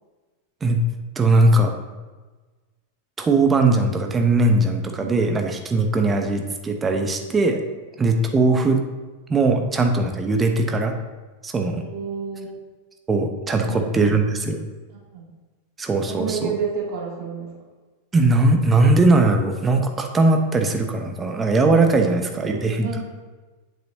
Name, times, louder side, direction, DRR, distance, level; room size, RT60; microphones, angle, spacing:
voice 1, 1.2-1.7 3.2-7.6 8.0-8.8 9.3-11.0 11.4-11.8 13.1-14.6 15.8-16.5 18.1-22.9, right 2 dB, 15° right, 4 dB, 0.9 m, -19 dB
voice 2, 5.0-5.3 11.7-12.6 13.5-14.2 14.9-15.3 16.1-17.5 21.9-23.0, right 5 dB, 45° right, -4 dB, 2.4 m, -32 dB
8.4 x 7.3 x 2.8 m, 1.3 s
figure-of-eight pair, 90°, 0 cm